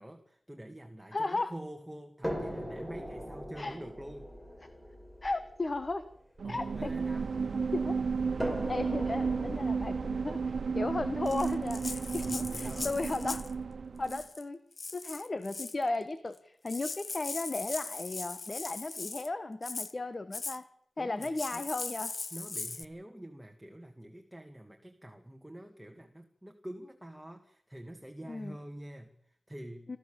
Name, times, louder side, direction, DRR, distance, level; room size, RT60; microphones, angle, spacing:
voice 1, 0.0-4.3 6.4-7.5 12.0-13.0 21.0-21.7 22.3-29.9, right 1 dB, 10° right, 4 dB, 2.2 m, -46 dB
voice 2, 1.1-1.5 3.6-3.8 5.2-6.1 6.5-6.9 7.7-7.9 8.5-13.4 14.0-14.6 14.9-20.6 21.0-22.1 28.3-28.6 29.9-30.0, left 2 dB, 50° left, 11 dB, 1.3 m, -35 dB
sound 1, 2.2-7.5 8.4-12.4 13.3-13.4 13.9-14.0, equal, 10° left, 5.0 m, -41 dB
sound 2, 6.4-14.2, right 5 dB, 85° right, 0.9 m, -33 dB
Rattle (instrument), 11.3-13.5 14.0-14.4 14.8-15.8 16.4-16.5 16.7-19.3 19.6-19.9 20.3-20.6 21.2-22.8, left 3 dB, 65° left, 0.8 m, -40 dB
25.5 x 14.5 x 7.1 m, 0.70 s
cardioid pair, 50°, 0 cm